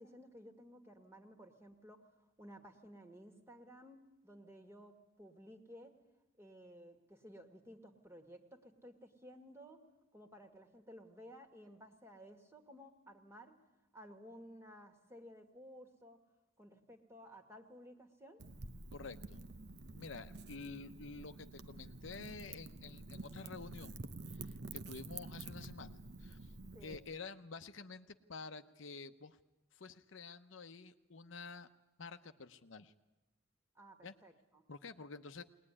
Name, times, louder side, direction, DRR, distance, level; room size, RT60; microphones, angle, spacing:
voice 1, 0.0-2.1 2.4-6.0 6.4-9.8 10.1-13.6 13.9-16.2 16.6-18.4 26.7-27.0 33.8-34.6, equal, 15° right, 5 dB, 1.9 m, -56 dB
Wind / Fire, 18.4-27.0, right 3 dB, 55° right, 0.8 m, -49 dB
voice 2, 18.9-19.4 19.9-24.0 24.3-26.5 26.8-29.4 29.7-31.7 32.0-32.9 34.0-34.1 34.7-35.4, left 4 dB, 70° left, 9 dB, 0.8 m, -49 dB
21.5 x 19.5 x 9.8 m, 1.0 s
head